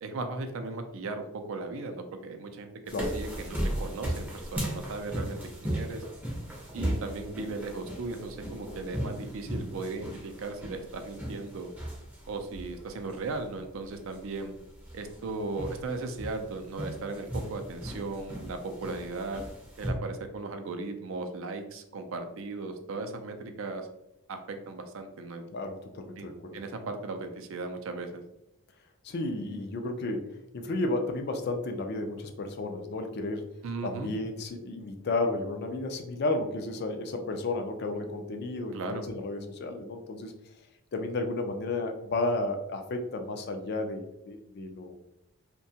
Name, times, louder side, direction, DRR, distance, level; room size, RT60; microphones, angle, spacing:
voice 1, 0.0-2.7 3.1-6.0 6.7-11.7 12.3-14.5 14.9-19.4 19.8-23.9 24.3-25.4 26.2-28.2 33.6-34.1 38.7-39.1, right 3 dB, 65° right, 6 dB, 0.4 m, -37 dB
sound 1, 2.9-19.9, equal, 10° right, 0.5 m, -37 dB
voice 2, 25.5-26.6 29.0-33.5 33.8-40.3 40.9-45.0, left 2 dB, 50° left, 5 dB, 0.3 m, -32 dB
2.7 x 2.2 x 2.7 m, 0.85 s
head